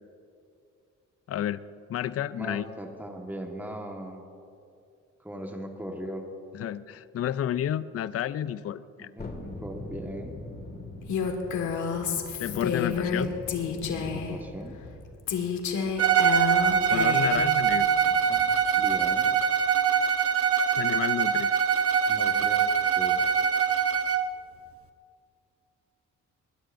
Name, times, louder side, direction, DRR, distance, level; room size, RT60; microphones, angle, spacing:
voice 1, 1.3-1.6 1.9-2.7 6.5-9.1 12.4-13.3 16.9-17.9 20.8-21.6, left 11 dB, 50° left, 16 dB, 0.5 m, -31 dB
voice 2, 2.3-4.2 5.2-6.2 9.0-10.4 13.0-13.6 14.0-14.8 18.0-19.3 22.1-23.2, right 1 dB, 5° right, 2 dB, 1.5 m, -39 dB
Thunderstorm, 9.2-19.4 19.7-19.8, left 2 dB, 30° left, 2.1 m, -43 dB
Female speech woman speaking, 11.1-14.4 15.3-17.5, left 6 dB, 75° left, 1.8 m, -29 dB
Bowed string instrument, 16.0-24.3, right 7 dB, 50° right, 0.9 m, -23 dB
21.0 x 20.5 x 2.6 m, 2.5 s
cardioid pair, 90°, 30 cm